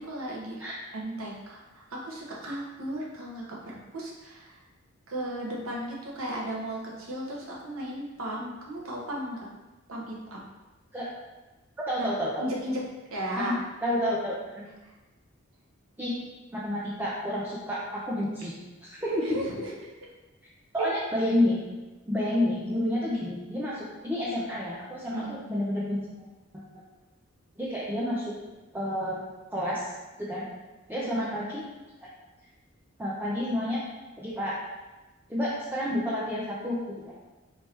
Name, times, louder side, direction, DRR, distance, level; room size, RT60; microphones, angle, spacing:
voice 1, 0.0-0.6 0.9-1.6 1.9-4.5 5.1-9.4 9.9-10.4 12.0-12.1 12.4-12.8 13.1-13.6 19.1-19.5 20.8-20.9 25.1-25.4 31.1-31.3, right 1 dB, 90° right, -3 dB, 1.0 m, -35 dB
voice 2, 11.9-12.4 13.8-14.7 16.0-16.1 16.5-18.5 18.8-19.1 20.7-21.6 22.1-26.0 27.6-28.3 28.7-29.2 29.5-29.9 30.2-30.5 30.9-31.6 32.0-32.1 33.0-33.8 34.2-34.5 35.3-37.1, left 1 dB, 10° right, -7 dB, 0.6 m, -29 dB
4.5 x 2.9 x 3.3 m, 1.1 s
head